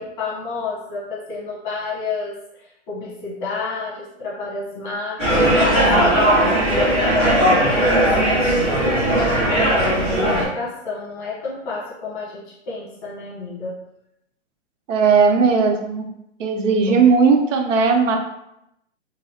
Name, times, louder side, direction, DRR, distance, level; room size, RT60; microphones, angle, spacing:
voice 1, 0.0-7.3 7.6-13.8 16.9-17.0, left 3 dB, 40° left, -5 dB, 1.1 m, -31 dB
sound 1, 5.2-10.4, equal, 5° right, 1.3 m, -17 dB
voice 2, 14.9-16.0 16.4-18.2, right 5 dB, 90° right, 4 dB, 0.7 m, -17 dB
3.0 x 2.6 x 2.8 m, 0.82 s
hypercardioid pair, 160°, 37 cm